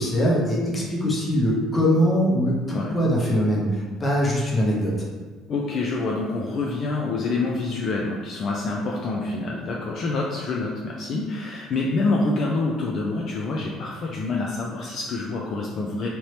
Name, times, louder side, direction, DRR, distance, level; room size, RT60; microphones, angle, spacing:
voice 1, 0.0-4.9, equal, 25° left, -3 dB, 0.8 m, -22 dB
voice 2, 5.5-16.1, left 3 dB, 50° left, -1 dB, 0.4 m, -27 dB
2.9 x 2.7 x 3.2 m, 1.4 s
cardioid pair, 110°, 0 cm